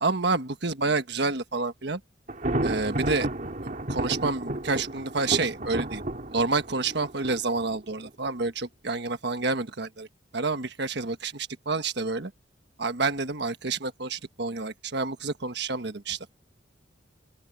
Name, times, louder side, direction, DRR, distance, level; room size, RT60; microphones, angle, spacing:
voice 1, 0.0-2.0 2.6-3.3 3.9-6.0 6.3-10.1 10.3-12.3 12.8-16.3, right 3 dB, 60° right, 1.4 m, -28 dB
Thunder, 2.3-8.1, right 1 dB, 45° right, 2.7 m, -32 dB
open air
head